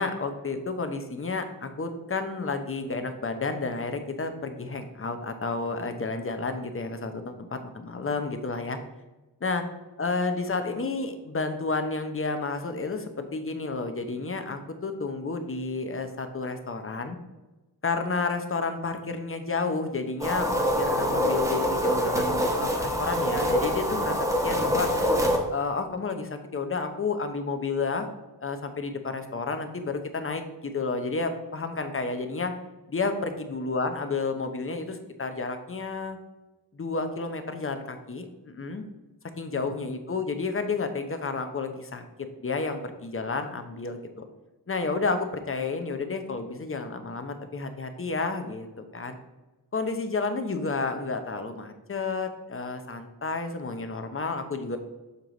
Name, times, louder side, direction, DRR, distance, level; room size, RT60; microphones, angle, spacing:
voice 1, 0.0-8.8 9.4-9.6 10.0-17.2 17.8-24.2 24.4-24.9 25.5-28.1 28.4-32.5 32.9-36.2 36.7-38.8 39.4-42.0 42.4-44.3 44.7-49.2 49.7-54.8, left 3 dB, 35° left, 7 dB, 0.8 m, -31 dB
sound 1, 20.2-25.4, equal, 10° right, 1.2 m, -25 dB
6.8 x 4.5 x 3.9 m, 1.1 s
wide cardioid pair, 90°, 38 cm